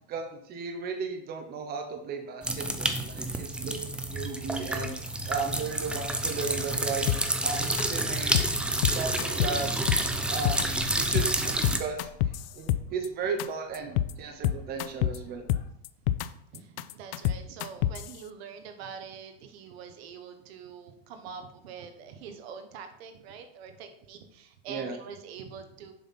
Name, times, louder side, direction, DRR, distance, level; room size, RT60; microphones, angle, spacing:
voice 1, 0.1-3.8 4.1-4.9 5.3-7.2 7.4-8.4 8.9-9.7 10.3-12.1 12.5-15.5 24.7-24.9, right 5 dB, 30° right, 4 dB, 1.0 m, -35 dB
sound 1, 2.4-11.8, right 2 dB, 5° right, 0.3 m, -29 dB
voice 2, 3.5-4.1 8.5-8.6 12.8-12.9 14.2-14.3 16.1-25.9, right 6 dB, 70° right, 7 dB, 1.2 m, -45 dB
sound 2, 7.1-7.4 7.8-7.9 8.1-8.5 8.8-9.6 9.9-10.6 10.9-11.3 11.6-13.1 13.4-13.5 13.7-14.1 14.4-15.2 15.5-16.3 16.5-18.1, left 12 dB, 60° left, 0.5 m, -27 dB
sound 3, 9.8-15.7, left 1 dB, 40° left, 1.6 m, -51 dB
7.1 x 5.7 x 4.3 m, 0.71 s
supercardioid pair, 140°, 32 cm